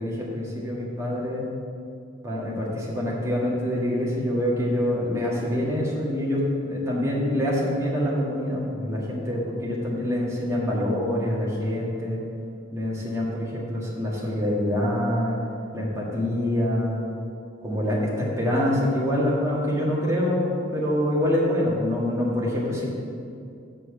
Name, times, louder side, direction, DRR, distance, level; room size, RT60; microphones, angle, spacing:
voice 1, 0.0-1.5 2.2-12.2 12.7-15.4 15.7-17.0 17.6-22.9, left 1 dB, 15° right, -5 dB, 1.7 m, -25 dB
6.5 x 6.2 x 7.5 m, 2.5 s
head